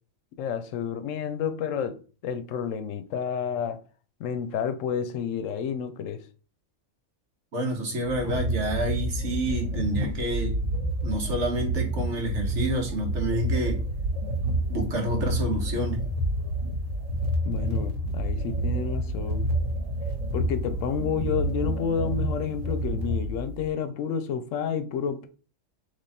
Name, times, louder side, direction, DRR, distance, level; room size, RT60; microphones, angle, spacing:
voice 1, 0.4-3.8 4.2-6.2 17.4-19.5 20.3-25.3, left 7 dB, 80° left, 1.0 m, -30 dB
voice 2, 7.5-10.6 11.0-13.8 14.7-16.0, right 1 dB, 65° right, 1.5 m, -29 dB
sound 1, 8.0-23.7, right 1 dB, 85° right, 1.4 m, -29 dB
3.5 x 3.1 x 4.1 m
omnidirectional pair, 1.3 m